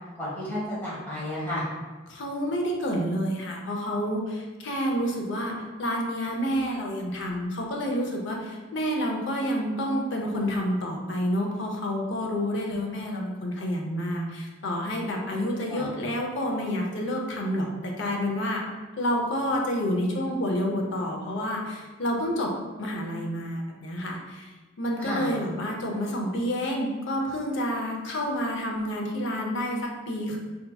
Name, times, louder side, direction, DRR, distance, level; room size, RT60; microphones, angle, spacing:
voice 1, 0.2-1.6 15.7-15.9 25.0-25.3, left 1 dB, 10° left, -9 dB, 1.1 m, -32 dB
voice 2, 2.1-18.6 19.0-24.5 24.8-30.4, equal, 60° left, 0 dB, 0.6 m, -29 dB
4.3 x 2.7 x 2.2 m, 1.3 s
head